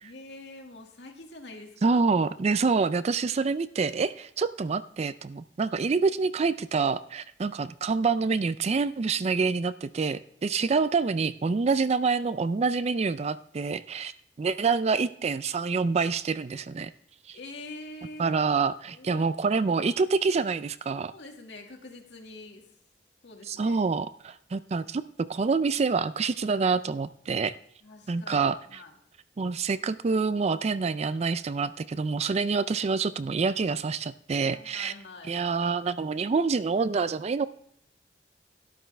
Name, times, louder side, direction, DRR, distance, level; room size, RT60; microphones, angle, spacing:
voice 1, 0.0-2.0 10.7-10.8 17.3-18.4 18.9-19.3 21.1-22.7 23.2-23.8 27.8-29.0 34.5-35.3, left 2 dB, 75° left, 2 dB, 2.0 m, -45 dB
voice 2, 1.8-14.1 14.4-16.9 17.3-17.4 18.2-21.1 23.5-25.0 25.3-27.5 28.1-28.6 29.4-34.9 35.3-37.5, right 4 dB, 35° right, 14 dB, 0.4 m, -27 dB
12.5 x 11.5 x 3.3 m, 0.69 s
head